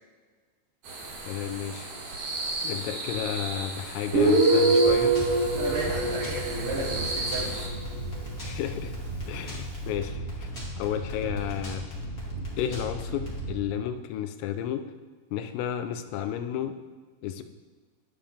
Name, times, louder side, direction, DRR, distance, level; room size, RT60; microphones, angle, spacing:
sound 1, 0.8-7.7, right 2 dB, 50° right, 4.0 m, -35 dB
voice 1, 1.3-1.9 2.6-5.1 8.4-8.9 9.3-10.5 10.8-11.8 12.6-14.8 15.3-16.7 17.2-17.4, left 10 dB, 85° left, 8 dB, 3.4 m, -32 dB
Guitar, 4.1-7.7, right 2 dB, 85° right, 6.5 m, -23 dB
sound 2, 4.8-13.5, right 1 dB, 50° left, 1.0 m, -36 dB
voice 2, 5.6-7.6, right 3 dB, 65° right, -6 dB, 3.7 m, -33 dB
21.5 x 7.4 x 3.5 m, 1.4 s
omnidirectional pair, 5.9 m